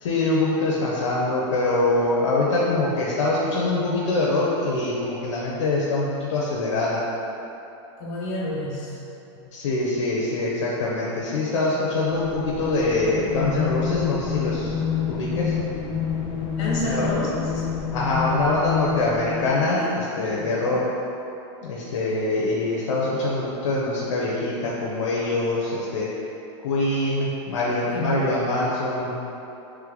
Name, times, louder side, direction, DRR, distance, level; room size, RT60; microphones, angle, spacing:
voice 1, 0.0-7.0 9.5-14.7 15.1-15.5 16.8-17.1 17.9-20.8 21.6-26.1 26.6-29.1, left 2 dB, 85° left, -5 dB, 0.6 m, -24 dB
voice 2, 8.0-9.0 16.6-17.6 19.8-20.8 27.9-28.4, left 1 dB, 55° left, -5 dB, 1.3 m, -30 dB
sound 1, 12.0-19.7, left 7 dB, 35° left, 0.5 m, -28 dB
3.3 x 3.2 x 3.7 m, 2.9 s
supercardioid pair, 135°, 15 cm